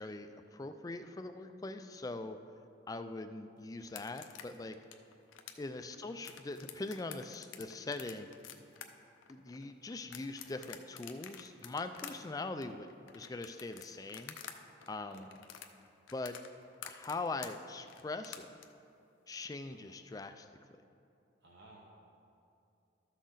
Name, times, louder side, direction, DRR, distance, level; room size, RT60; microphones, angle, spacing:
voice 1, 0.0-2.4 2.9-4.8 5.6-8.3 9.3-12.9 13.1-14.3 14.9-15.3 16.1-16.4 16.8-18.5 19.3-20.5, left 3 dB, 20° left, 8 dB, 0.3 m, -42 dB
sound 1, 3.8-14.6 14.8-18.6, left 9 dB, 85° left, 0.6 m, -49 dB
voice 2, 15.1-15.4 19.7-19.8 21.4-21.8, right 2 dB, 60° right, -4 dB, 1.0 m, -59 dB
13.0 x 6.3 x 3.9 m, 2.6 s
head